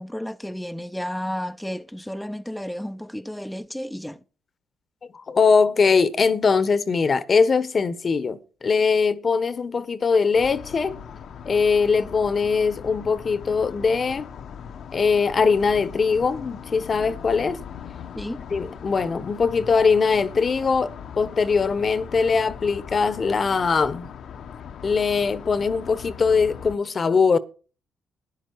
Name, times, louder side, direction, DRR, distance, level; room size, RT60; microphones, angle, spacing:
voice 1, 0.0-4.2 18.2-18.4, equal, 5° left, 0.5 m, -32 dB
voice 2, 5.1-11.0 11.4-14.3 14.9-17.6 18.5-24.1 24.8-27.4, left 5 dB, 40° left, 0.9 m, -21 dB
sound 1, 10.3-26.8, left 7 dB, 65° left, 0.9 m, -39 dB
12.5 x 10.0 x 4.5 m
cardioid pair, 90°, 0 cm